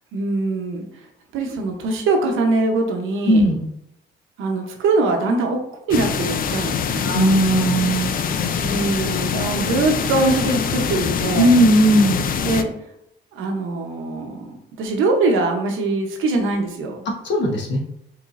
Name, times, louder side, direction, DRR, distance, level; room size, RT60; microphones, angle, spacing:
voice 1, 0.1-0.8 1.3-3.4 4.4-5.6 5.9-7.1 8.6-11.5 12.4-12.7 13.3-17.0, right 3 dB, 85° right, 3 dB, 0.8 m, -22 dB
voice 2, 3.3-3.7 7.0-8.6 11.3-12.3 17.2-17.8, right 1 dB, 65° left, 1 dB, 1.1 m, -17 dB
sound 1, 5.9-12.6, left 7 dB, 45° left, 0.4 m, -24 dB
4.8 x 3.1 x 2.5 m, 0.79 s
cardioid pair, 90°, 20 cm